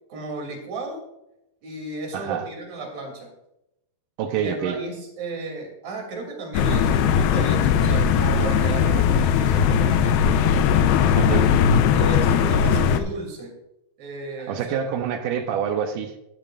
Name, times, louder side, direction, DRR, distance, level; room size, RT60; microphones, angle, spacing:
voice 1, 0.1-1.0 1.6-3.3 4.3-10.4 11.4-13.5 14.0-14.8, right 2 dB, 45° right, 0 dB, 3.8 m, -34 dB
voice 2, 2.1-2.5 4.2-4.8 11.2-11.6 14.4-16.2, right 8 dB, 80° right, 6 dB, 1.9 m, -27 dB
sound 1, 6.5-13.0, left 7 dB, 80° left, 2.6 m, -19 dB
17.5 x 9.0 x 2.5 m, 0.85 s
omnidirectional pair, 4.7 m